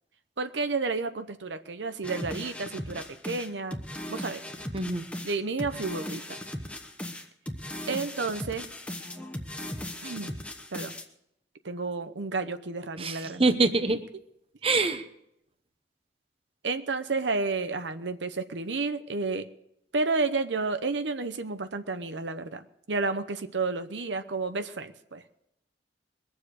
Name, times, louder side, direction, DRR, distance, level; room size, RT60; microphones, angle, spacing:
voice 1, 0.4-3.8 4.1-4.4 5.2-6.4 7.9-8.7 10.0-10.4 10.7-10.9 11.6-13.4 16.6-19.5 19.9-25.2, right 3 dB, 85° right, 10 dB, 0.9 m, -31 dB
sound 1, 2.0-11.1, left 1 dB, 5° left, 1.0 m, -38 dB
voice 2, 4.7-5.0 13.0-14.0 14.6-15.0, right 3 dB, 30° right, 9 dB, 0.9 m, -25 dB
22.0 x 7.3 x 6.5 m, 0.77 s
head